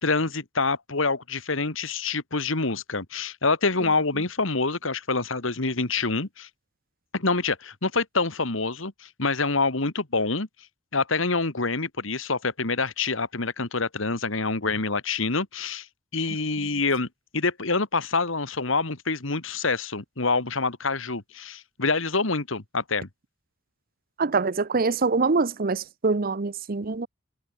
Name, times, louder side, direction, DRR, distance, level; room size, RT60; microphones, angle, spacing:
voice 1, 0.0-6.5 7.1-10.5 10.9-15.9 16.1-17.1 17.3-23.1, left 3 dB, 75° left, 2.1 m, -26 dB
voice 2, 24.2-27.1, right 4 dB, 45° right, 0.8 m, -24 dB
head